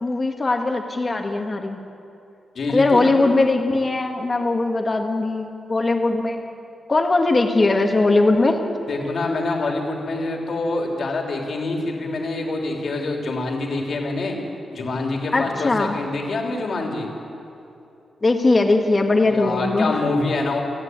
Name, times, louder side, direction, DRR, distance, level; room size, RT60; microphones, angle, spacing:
voice 1, 0.0-1.8 2.7-6.5 6.9-8.6 15.3-16.0 18.2-20.0, left 2 dB, 25° left, 4 dB, 1.8 m, -20 dB
voice 2, 2.5-3.3 8.9-14.4 14.7-17.1 19.3-20.6, left 2 dB, 55° left, 1 dB, 3.1 m, -26 dB
28.5 x 9.7 x 9.6 m, 2.8 s
wide cardioid pair, 145°, 0 cm